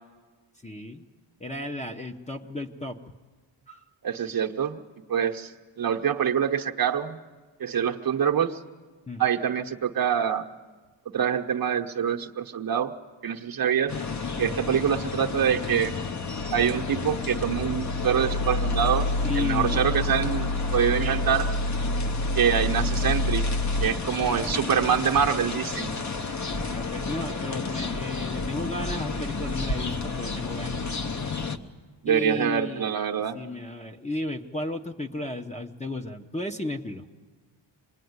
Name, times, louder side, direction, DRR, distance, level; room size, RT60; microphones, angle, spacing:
voice 1, 0.6-1.0 1.4-3.0 3.7-3.8 9.1-9.2 19.2-19.8 24.3-24.4 26.6-30.9 32.1-33.0 33.3-37.1, left 2 dB, 15° left, 4 dB, 0.9 m, -34 dB
voice 2, 4.0-4.8 5.1-7.2 7.6-8.6 9.2-10.4 11.1-12.9 13.2-13.9 14.4-15.9 16.5-19.1 19.3-21.5 22.3-23.4 23.8-25.9 32.0-33.4, right 8 dB, 50° right, 3 dB, 1.0 m, -25 dB
sound 1, 13.9-31.6, left 4 dB, 35° left, 1.0 m, -32 dB
sound 2, 16.4-23.9, left 1 dB, 85° left, 0.8 m, -28 dB
26.0 x 20.5 x 9.5 m, 1.4 s
wide cardioid pair, 165°, 47 cm